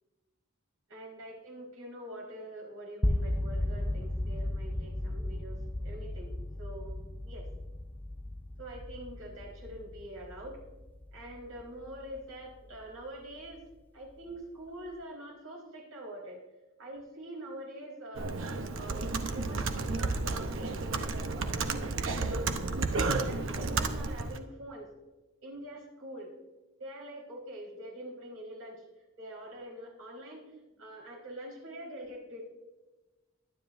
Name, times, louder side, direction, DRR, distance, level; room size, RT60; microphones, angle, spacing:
voice 1, 0.9-6.3 6.6-7.5 8.6-10.6 11.1-13.6 13.9-16.4 16.8-18.4 18.7-22.3 23.2-24.9 25.4-26.3 26.8-28.8 29.2-30.4 30.8-32.4, right 1 dB, 90° right, -2 dB, 4.4 m, -45 dB
sound 1, 3.0-13.0, left 1 dB, 10° left, 0.4 m, -35 dB
Computer keyboard, 18.2-24.4, right 3 dB, 65° right, 0.8 m, -32 dB
22.0 x 9.7 x 2.6 m, 1.1 s
head